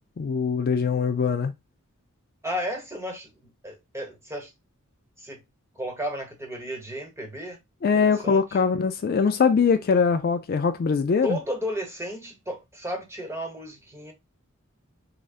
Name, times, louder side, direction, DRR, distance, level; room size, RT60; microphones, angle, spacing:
voice 1, 0.2-1.5 7.8-11.4, left 5 dB, 45° left, 0.3 m, -22 dB
voice 2, 2.4-4.5 5.2-5.4 5.7-7.6 7.9-8.5 11.2-14.1, equal, 15° right, 1.0 m, -33 dB
4.8 x 2.1 x 2.4 m
head